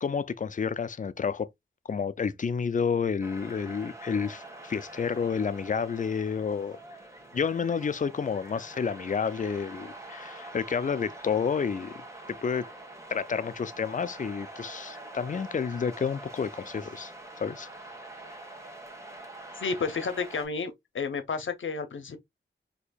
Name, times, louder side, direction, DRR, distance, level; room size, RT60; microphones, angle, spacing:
voice 1, 0.0-1.5 1.9-6.8 7.3-12.0 12.3-12.7 13.1-17.1 17.4-17.7 18.3-18.4, left 6 dB, 40° left, 0.4 m, -30 dB
sound 1, 3.2-20.5, right 2 dB, 15° right, 1.2 m, -45 dB
voice 2, 19.6-22.2, left 5 dB, 80° left, 0.7 m, -31 dB
4.3 x 2.9 x 2.2 m
wide cardioid pair, 80°, 20 cm